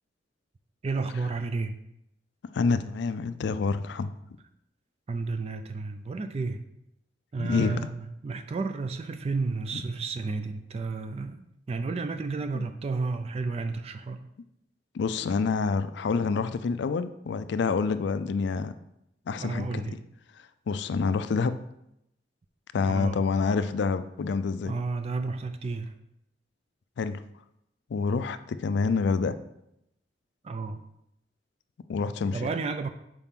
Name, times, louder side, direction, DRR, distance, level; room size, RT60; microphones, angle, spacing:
voice 1, 0.8-1.8 5.1-6.6 7.3-14.3 19.4-19.9 22.8-23.2 24.7-25.9 30.4-30.8 32.3-32.9, right 3 dB, 35° right, 9 dB, 0.3 m, -32 dB
voice 2, 2.5-4.1 7.4-7.8 12.5-12.7 14.9-18.7 19.3-19.8 20.7-21.5 22.7-24.7 27.0-27.2 27.9-29.4 31.9-32.5, left 4 dB, 65° left, 12 dB, 0.4 m, -27 dB
5.8 x 4.8 x 3.6 m, 0.81 s
head